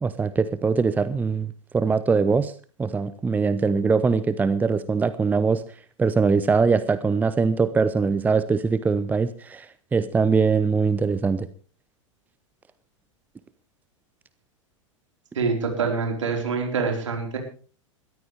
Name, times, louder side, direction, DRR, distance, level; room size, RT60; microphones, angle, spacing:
voice 1, 0.0-1.5 1.7-2.5 2.8-5.6 6.0-9.7 9.9-11.5, right 4 dB, 10° right, 14 dB, 0.7 m, -22 dB
voice 2, 15.3-17.4, right 5 dB, 65° right, 3 dB, 4.5 m, -25 dB
21.0 x 14.0 x 3.4 m, 0.39 s
figure-of-eight pair, 95°, 17 cm